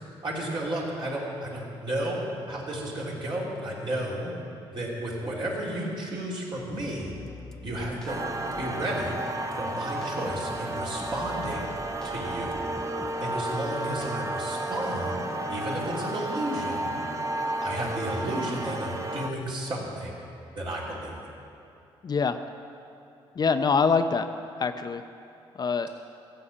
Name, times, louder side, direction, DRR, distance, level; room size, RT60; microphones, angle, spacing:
voice 1, 0.2-4.3 4.7-7.1 7.6-8.3 8.6-9.2 9.5-11.7 12.0-12.6 13.2-16.9 17.6-20.2 20.5-21.3, right 1 dB, 55° right, -5 dB, 3.5 m, -33 dB
sound 1, 6.6-14.3, left 2 dB, 5° left, 0.9 m, -47 dB
sound 2, 8.1-19.3, right 1 dB, 30° right, 0.9 m, -32 dB
voice 2, 22.0-22.4 23.4-24.3 24.6-25.0 25.5-25.9, left 5 dB, 45° left, 9 dB, 0.6 m, -24 dB
14.5 x 5.7 x 8.7 m, 2.7 s
cardioid pair, 80°, 10 cm